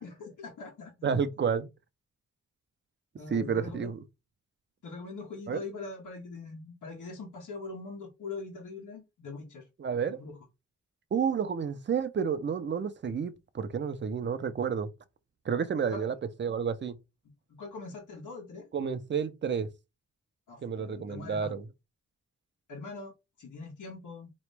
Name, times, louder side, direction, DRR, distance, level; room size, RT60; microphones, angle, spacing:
voice 1, 0.0-0.9 3.2-3.9 4.8-9.6 10.1-10.3 15.9-16.1 17.6-18.7 20.5-21.6 22.7-23.1 23.4-24.3, left 3 dB, 90° left, 1.4 m, -42 dB
voice 2, 1.0-1.7 3.3-4.0 5.5-5.6 9.8-10.2 11.1-14.9 15.5-17.0 18.7-19.7 20.6-21.6, right 6 dB, 40° right, 0.6 m, -30 dB
4.1 x 3.1 x 3.3 m
wide cardioid pair, 125°, 30 cm